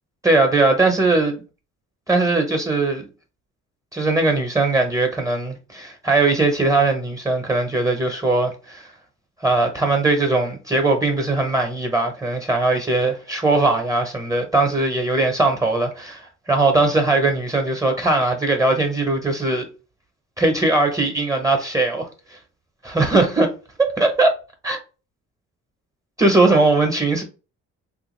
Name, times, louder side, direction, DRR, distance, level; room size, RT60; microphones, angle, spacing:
voice 1, 0.2-1.4 2.1-3.1 3.9-8.9 9.4-19.7 20.4-22.4 22.8-23.5 23.8-24.3 24.6-24.8 26.2-27.2, right 2 dB, 10° right, 0.9 m, -20 dB
3.3 x 2.5 x 3.1 m
cardioid pair, 90°, 30 cm